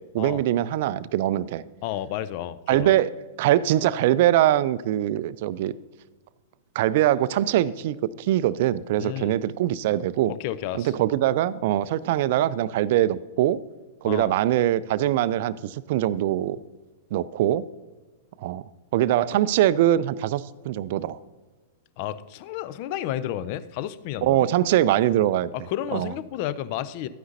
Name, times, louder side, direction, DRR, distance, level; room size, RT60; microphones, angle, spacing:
voice 1, 0.1-1.6 2.7-3.1 3.4-5.7 6.8-10.3 10.7-13.6 14.0-16.6 17.1-17.7 18.4-18.6 18.9-21.2 24.2-25.5 25.9-26.1, right 13 dB, 50° right, 18 dB, 0.3 m, -22 dB
voice 2, 1.8-2.9 9.0-9.3 10.3-10.9 14.0-14.3 22.0-24.5 25.5-27.1, left 12 dB, 45° left, 16 dB, 0.4 m, -31 dB
12.0 x 9.3 x 2.7 m, 1.3 s
figure-of-eight pair, 100°, 0 cm